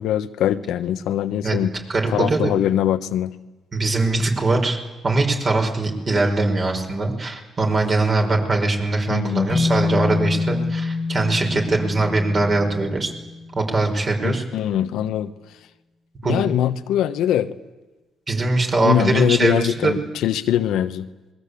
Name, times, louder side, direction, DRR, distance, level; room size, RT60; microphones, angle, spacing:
voice 1, 0.0-1.7 2.1-3.3 9.1-9.5 14.2-15.3 16.2-17.5 18.8-21.1, left 11 dB, 85° left, 10 dB, 1.1 m, -22 dB
voice 2, 1.9-2.5 3.7-13.1 13.5-14.4 16.2-16.4 18.3-20.0, right 2 dB, 40° right, 3 dB, 5.5 m, -21 dB
sound 1, 9.5-13.8, left 4 dB, 30° left, 1.4 m, -26 dB
27.0 x 22.0 x 8.5 m, 1.1 s
cardioid pair, 90°, 0 cm